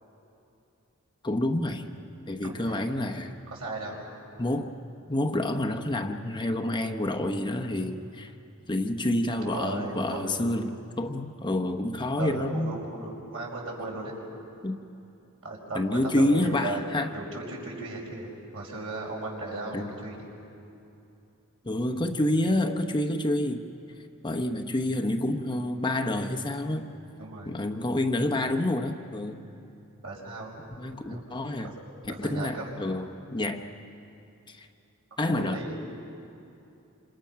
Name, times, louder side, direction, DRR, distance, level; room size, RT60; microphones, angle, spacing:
voice 1, 1.2-1.9 2.3-3.4 4.4-4.7 5.1-8.3 8.7-12.8 14.6-14.8 15.7-17.1 19.7-20.0 21.6-23.7 24.2-26.9 27.4-29.5 30.8-31.7 32.2-33.6 34.5-34.7 35.2-35.6, left 1 dB, 20° left, 5 dB, 0.9 m, -28 dB
voice 2, 2.4-3.0 3.5-4.0 9.4-10.4 12.1-14.1 15.4-16.8 17.1-20.3 27.2-27.5 30.0-30.6 31.1-31.2 31.6-31.7 32.1-32.9 35.3-35.7, right 2 dB, 70° right, -2 dB, 5.8 m, -36 dB
27.0 x 27.0 x 5.8 m, 2.8 s
head